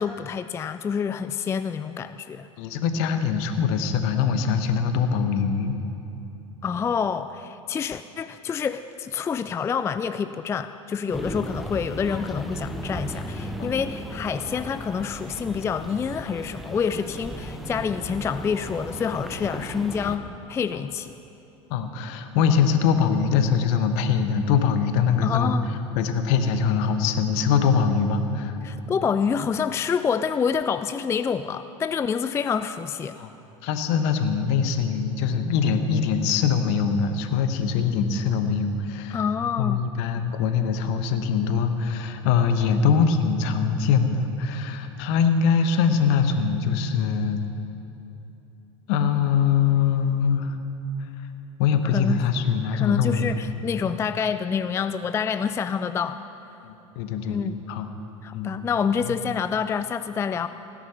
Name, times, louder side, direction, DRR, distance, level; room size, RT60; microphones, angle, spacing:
voice 1, 0.0-2.5 6.6-20.2 20.5-21.1 25.2-25.7 28.6-33.2 39.1-39.8 51.9-52.2 52.7-56.2 57.3-57.6 58.2-60.5, left 6 dB, 15° left, 12 dB, 0.3 m, -27 dB
voice 2, 2.6-5.8 13.6-13.7 21.7-25.5 25.9-28.6 33.1-33.3 33.6-39.2 39.6-47.4 48.9-50.6 51.6-53.3 53.8-54.0 56.6-57.4 57.7-57.9 58.3-58.5 59.1-59.2, left 6 dB, 60° left, 8 dB, 1.1 m, -23 dB
sound 1, 11.1-20.2, equal, ahead, 1.0 m, -35 dB
17.0 x 10.0 x 5.8 m, 2.9 s
figure-of-eight pair, 75°, 16 cm